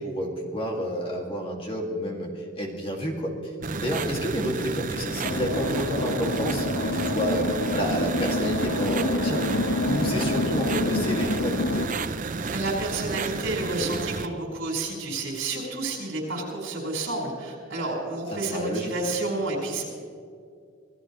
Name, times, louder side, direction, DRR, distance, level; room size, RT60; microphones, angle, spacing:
voice 1, 0.0-3.5 3.8-9.5 9.8-11.9 18.3-18.9, equal, 25° left, 0 dB, 2.3 m, -30 dB
sound 1, 3.6-14.3, right 4 dB, 40° right, 0.6 m, -32 dB
sound 2, 5.2-11.9, left 2 dB, 65° left, 1.0 m, -27 dB
voice 2, 12.4-19.8, right 2 dB, 65° right, -1 dB, 4.8 m, -30 dB
26.0 x 17.5 x 3.2 m, 2.3 s
head